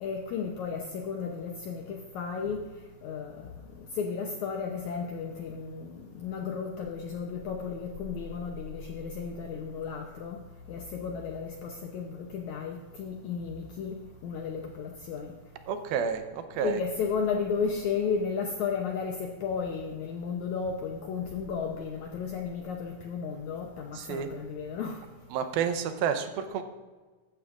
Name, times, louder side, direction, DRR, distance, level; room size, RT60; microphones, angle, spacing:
voice 1, 0.0-2.6 3.0-3.5 3.8-10.4 10.7-14.0 14.2-15.3 16.6-25.0, left 6 dB, 80° left, 2 dB, 1.7 m, -34 dB
voice 2, 15.7-16.8 23.9-24.3 25.3-26.6, right 7 dB, 90° right, 8 dB, 2.6 m, -30 dB
15.0 x 11.5 x 2.5 m, 1.3 s
omnidirectional pair, 4.3 m